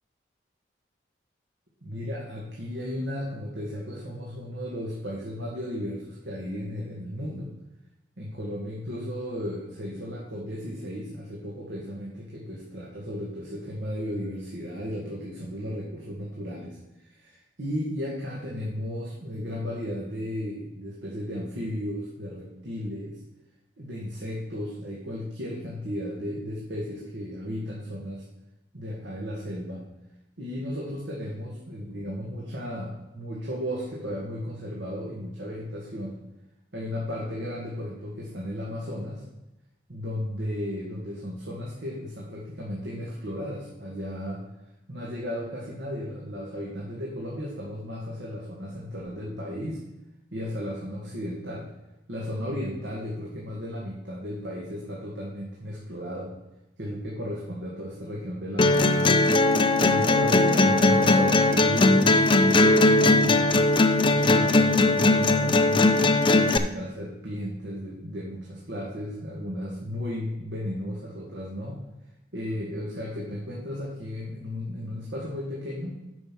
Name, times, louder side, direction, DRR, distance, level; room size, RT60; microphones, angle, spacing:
voice 1, 1.8-7.5 8.2-23.2 23.8-28.2 28.7-29.8 30.4-36.2 36.7-39.2 39.9-44.4 44.9-49.8 50.3-51.7 52.1-56.3 56.8-59.2 59.8-63.7 64.1-65.9 66.3-71.8 72.3-76.0, equal, 80° right, -4 dB, 1.8 m, -34 dB
sound 1, 58.6-66.6, left 2 dB, 30° left, 0.5 m, -19 dB
8.0 x 5.7 x 6.1 m, 0.92 s
head